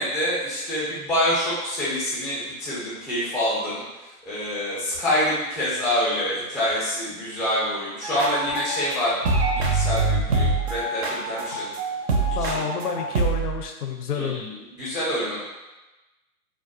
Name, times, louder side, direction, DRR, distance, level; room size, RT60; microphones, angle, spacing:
voice 1, 0.0-3.8 4.2-9.2 9.5-11.7 12.4-12.6 14.1-15.4, left 1 dB, 10° left, -9 dB, 0.4 m, -26 dB
sound 1, 8.0-8.9 9.2-13.6, right 3 dB, 45° right, 0.5 m, -24 dB
voice 2, 12.4-14.4, left 6 dB, 80° left, 3 dB, 0.6 m, -29 dB
2.3 x 2.1 x 2.5 m, 1.1 s
hypercardioid pair, 135°, 45 cm